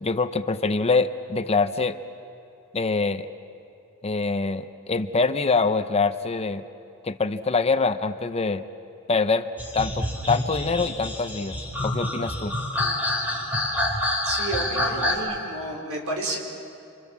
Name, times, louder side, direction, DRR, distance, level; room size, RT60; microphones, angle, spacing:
voice 1, 0.0-2.0 2.7-3.3 4.0-6.6 7.0-8.6 9.1-9.5 9.7-11.6 11.8-12.5, left 4 dB, 30° left, 10 dB, 0.8 m, -24 dB
sound 1, 9.6-15.1, left 1 dB, 10° right, 3.9 m, -27 dB
voice 2, 14.2-16.4, right 1 dB, 70° right, 0 dB, 5.0 m, -31 dB
30.0 x 24.5 x 7.4 m, 2.7 s
head